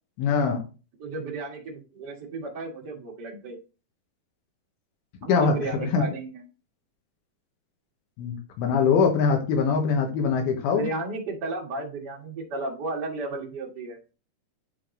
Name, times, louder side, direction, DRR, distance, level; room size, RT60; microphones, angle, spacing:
voice 1, 0.2-0.6 5.3-6.0 8.2-10.9, left 5 dB, 85° left, 3 dB, 3.2 m, -23 dB
voice 2, 1.0-3.6 5.2-6.4 10.7-14.0, right 3 dB, 45° right, -1 dB, 1.5 m, -33 dB
10.0 x 3.5 x 3.8 m, 0.33 s
omnidirectional pair, 4.3 m